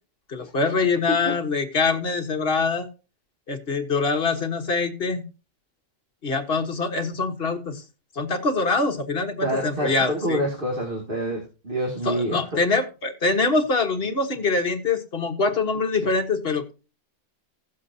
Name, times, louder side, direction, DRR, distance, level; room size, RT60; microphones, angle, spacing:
voice 1, 0.3-2.9 3.5-5.2 6.2-7.8 8.1-10.4 12.0-16.7, left 3 dB, 50° left, 4 dB, 1.6 m, -24 dB
voice 2, 9.4-12.4, equal, 45° right, -2 dB, 2.6 m, -27 dB
16.5 x 7.4 x 2.7 m, 0.31 s
omnidirectional pair, 1.3 m